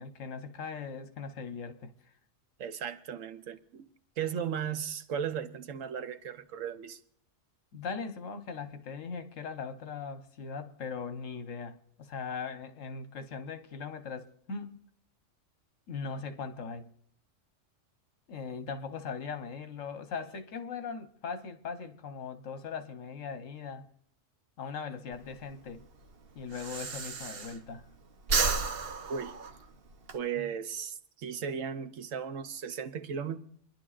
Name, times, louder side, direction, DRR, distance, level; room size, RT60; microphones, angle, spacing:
voice 1, 0.0-1.9 7.7-14.8 15.9-16.9 18.3-23.9 24.6-25.8 26.3-27.9 30.4-30.5, left 5 dB, 80° left, 1.4 m, -40 dB
voice 2, 2.6-3.9 4.2-7.0 29.1-29.3 30.1-33.4, right 7 dB, 85° right, 1.2 m, -36 dB
Breathing, 25.1-27.9 28.2-30.2, right 4 dB, 55° right, 1.0 m, -32 dB
28.5 x 10.5 x 2.5 m
omnidirectional pair, 1.3 m